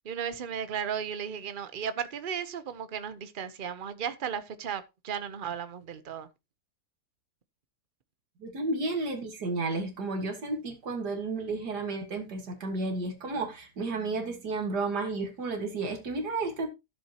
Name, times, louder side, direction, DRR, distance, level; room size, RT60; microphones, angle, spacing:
voice 1, 0.0-6.3, right 8 dB, 40° right, 0.9 m, -35 dB
voice 2, 8.4-16.7, right 3 dB, 80° right, 2.4 m, -32 dB
14.0 x 7.7 x 2.9 m
omnidirectional pair, 1.7 m